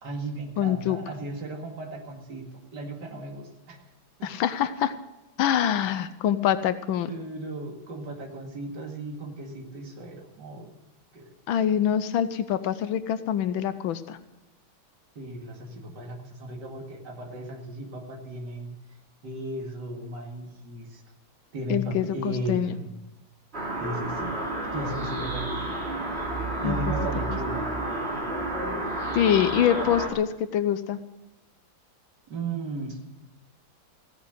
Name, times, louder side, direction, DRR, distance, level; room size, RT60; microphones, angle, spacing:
voice 1, 0.0-3.8 4.2-4.3 7.1-10.7 11.1-11.3 15.2-18.7 19.2-21.0 21.5-22.9 23.8-24.4 24.7-25.8 26.2-27.7 32.3-33.1, right 1 dB, 60° right, 1 dB, 2.8 m, -36 dB
voice 2, 0.6-1.0 4.2-4.9 5.4-7.1 11.5-14.2 21.7-22.8 26.6-26.8 27.3-27.4 29.1-31.0, left 10 dB, 85° left, 12 dB, 1.5 m, -25 dB
sound 1, 23.5-30.1, right 2 dB, 30° right, 2.9 m, -30 dB
16.0 x 9.4 x 7.9 m, 0.93 s
omnidirectional pair, 2.1 m